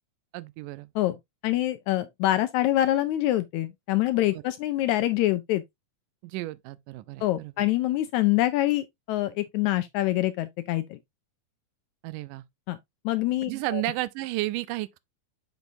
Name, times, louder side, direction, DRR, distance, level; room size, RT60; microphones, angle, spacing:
voice 1, 0.3-0.9 4.3-4.4 6.2-7.5 12.0-12.4 13.4-15.0, right 18 dB, 85° right, 2.1 m, -32 dB
voice 2, 1.4-5.6 7.2-11.0 12.7-12.8 13.0-13.8, left 15 dB, 80° left, 1.7 m, -25 dB
6.8 x 6.1 x 2.6 m
omnidirectional pair, 3.7 m